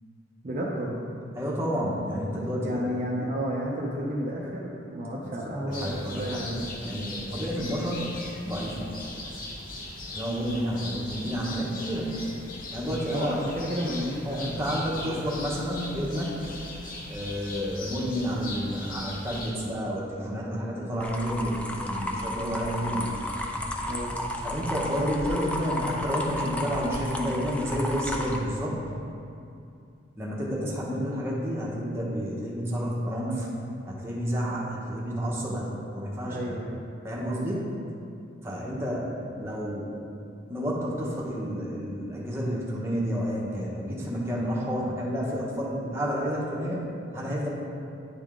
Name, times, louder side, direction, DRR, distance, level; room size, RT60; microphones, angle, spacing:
voice 1, 0.4-1.1 2.6-6.9 10.6-11.0 13.1-15.2 23.9-24.2 36.2-36.8 37.3-37.5, equal, 40° right, -4 dB, 0.6 m, -32 dB
voice 2, 1.3-2.8 5.5-6.4 6.8-8.9 10.1-12.1 12.7-13.4 14.2-16.3 17.1-23.1 24.4-28.8 30.2-33.5 33.9-36.5 37.0-37.7 38.4-39.9 40.5-46.8 47.1-47.5, equal, 15° right, -5 dB, 1.0 m, -30 dB
sound 1, 5.7-19.5, left 2 dB, 45° left, 0.8 m, -39 dB
sound 2, 21.0-28.4, left 1 dB, 5° left, 0.4 m, -33 dB
9.7 x 3.6 x 3.6 m, 2.5 s
head